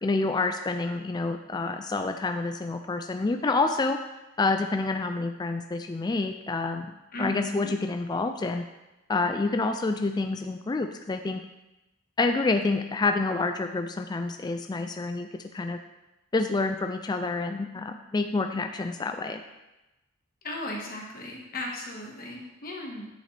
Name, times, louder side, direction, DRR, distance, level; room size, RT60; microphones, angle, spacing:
voice 1, 0.0-4.0 4.4-6.9 7.2-8.6 9.1-11.4 12.2-15.3 15.5-15.8 16.3-19.4, left 3 dB, 20° left, 6 dB, 0.3 m, -28 dB
voice 2, 7.1-7.7 20.4-23.1, left 1 dB, 45° left, -1 dB, 1.5 m, -36 dB
9.2 x 6.5 x 3.3 m, 0.99 s
head